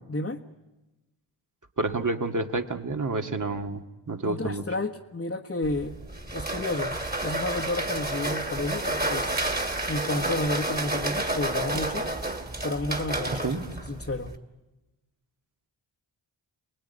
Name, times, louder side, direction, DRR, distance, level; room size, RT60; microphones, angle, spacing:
voice 1, 0.1-0.4 4.2-6.0 6.3-9.3 9.9-12.1 12.6-13.6 13.9-14.3, left 2 dB, 30° left, -1 dB, 1.5 m, -31 dB
voice 2, 1.8-4.6 13.3-13.6, right 3 dB, 40° right, 5 dB, 2.1 m, -29 dB
sound 1, 5.6-14.4, right 2 dB, 20° right, 2.6 m, -30 dB
29.5 x 20.0 x 9.7 m, 1.1 s
wide cardioid pair, 70°, 48 cm